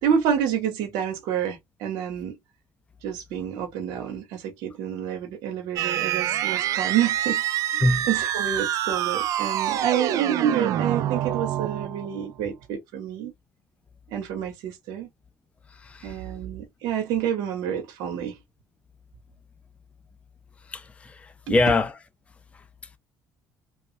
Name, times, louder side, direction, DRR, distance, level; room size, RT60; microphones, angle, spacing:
voice 1, 0.0-2.4 3.0-13.3 14.1-15.1 16.0-18.4 21.5-21.6, right 8 dB, 75° right, 0.9 m, -28 dB
sound 1, 5.8-12.3, right 12 dB, 60° right, 0.4 m, -26 dB
voice 2, 15.8-16.2 20.7-21.9, left 2 dB, 20° left, 0.5 m, -24 dB
3.1 x 2.3 x 2.7 m
cardioid pair, 100°, 6 cm